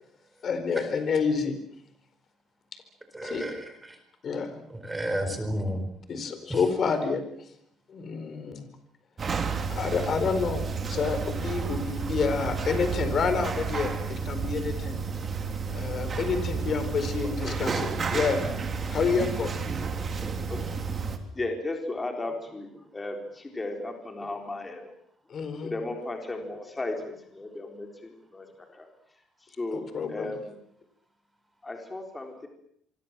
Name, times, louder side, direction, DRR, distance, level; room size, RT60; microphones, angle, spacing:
voice 1, 0.4-1.5 3.2-3.4 4.2-4.6 6.1-7.2 7.9-8.7 9.7-15.0 15.7-18.5 18.9-19.5 25.3-25.7 29.9-30.2, left 5 dB, 40° left, 9 dB, 4.5 m, -28 dB
voice 2, 3.1-4.0 4.7-5.9 6.5-6.6 18.8-19.0 24.2-24.3, equal, 10° right, 7 dB, 4.8 m, -32 dB
sound 1, 9.2-21.2, right 5 dB, 30° right, 3.2 m, -31 dB
voice 3, 17.1-17.7 20.3-20.9 21.3-24.9 25.6-30.6 31.6-32.5, left 2 dB, 15° left, 3 dB, 4.1 m, -36 dB
26.5 x 24.0 x 7.6 m, 0.71 s
cardioid pair, 130°, 0 cm